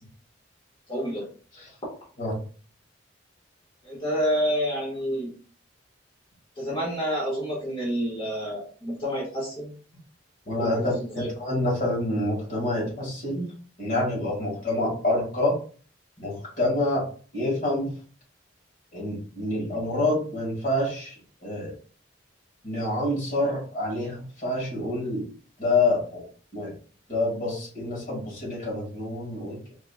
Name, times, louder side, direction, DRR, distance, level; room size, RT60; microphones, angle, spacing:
voice 1, 0.9-1.2 3.8-5.3 6.5-9.7 10.6-10.8 11.1-11.3, equal, 25° left, -9 dB, 1.5 m, -28 dB
voice 2, 10.5-13.4 13.8-15.6 16.2-17.1 17.3-17.9 18.9-21.7 22.6-25.3 25.6-26.3 26.5-26.7 27.1-29.7, left 2 dB, 45° left, -4 dB, 2.0 m, -27 dB
4.7 x 2.9 x 2.3 m, 0.40 s
head